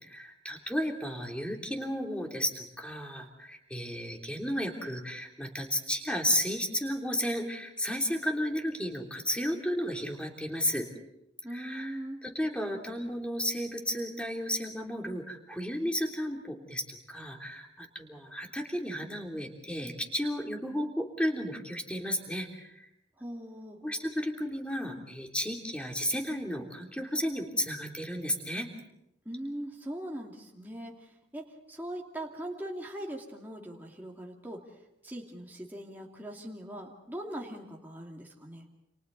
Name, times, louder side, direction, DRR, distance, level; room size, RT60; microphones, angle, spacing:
voice 1, 0.0-10.9 11.5-22.9 23.8-28.7, equal, 5° left, 1 dB, 3.2 m, -33 dB
voice 2, 11.4-12.2 23.2-23.8 29.2-34.6 35.0-38.7, right 1 dB, 10° right, -2 dB, 2.5 m, -41 dB
30.0 x 28.0 x 4.1 m, 0.84 s
head